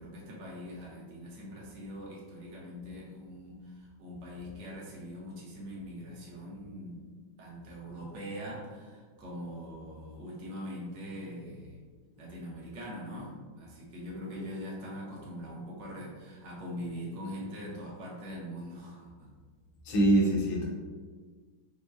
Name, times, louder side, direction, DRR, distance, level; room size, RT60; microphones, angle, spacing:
voice 1, 0.0-7.1 7.4-11.8 12.2-19.3, equal, 65° right, -4 dB, 1.4 m, -42 dB
voice 2, 19.8-20.7, right 1 dB, 70° left, -3 dB, 1.4 m, -24 dB
4.7 x 2.1 x 2.5 m, 1.5 s
omnidirectional pair, 2.4 m